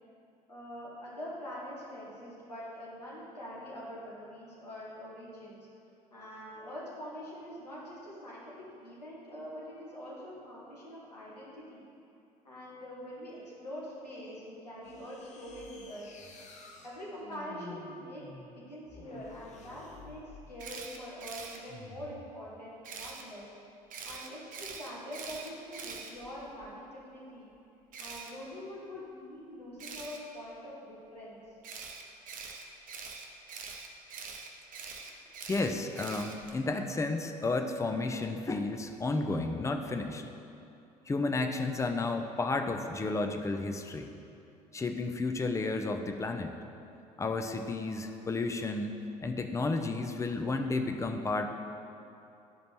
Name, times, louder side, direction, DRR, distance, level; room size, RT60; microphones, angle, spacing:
voice 1, 0.5-5.6 6.1-11.8 12.4-16.1 16.8-18.2 18.5-23.4 24.0-27.5 28.0-31.4, equal, 85° left, -7 dB, 1.2 m, -44 dB
sound 1, 14.8-20.8 21.7-22.3, left 3 dB, 35° left, 0.8 m, -51 dB
Camera, 20.6-21.6 22.8-23.2 23.9-26.7 27.9-28.3 29.8-30.2 31.6-36.6, right 5 dB, 40° right, 0.7 m, -44 dB
voice 2, 35.5-40.2 41.1-44.1 44.7-46.6 47.2-51.5, left 3 dB, 15° left, 6 dB, 0.5 m, -32 dB
11.0 x 5.1 x 3.1 m, 2.7 s
figure-of-eight pair, 55°, 20 cm